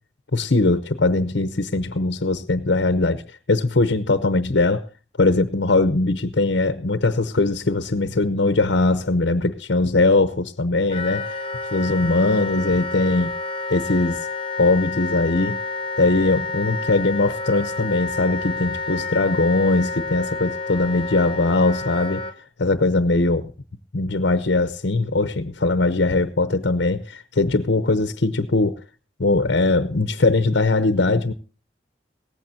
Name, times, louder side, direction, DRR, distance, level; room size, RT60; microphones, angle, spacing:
voice 1, 0.3-3.2 3.5-4.9 5.2-11.4 11.7-13.3 13.7-14.2 14.6-15.6 16.0-22.3 22.6-23.5 23.9-28.8 29.2-31.3, left 2 dB, 70° left, 11 dB, 0.8 m, -20 dB
Wind instrument woodwind instrument, 10.9-22.3, left 3 dB, 30° left, 1.3 m, -30 dB
18.0 x 15.0 x 2.8 m, 0.36 s
head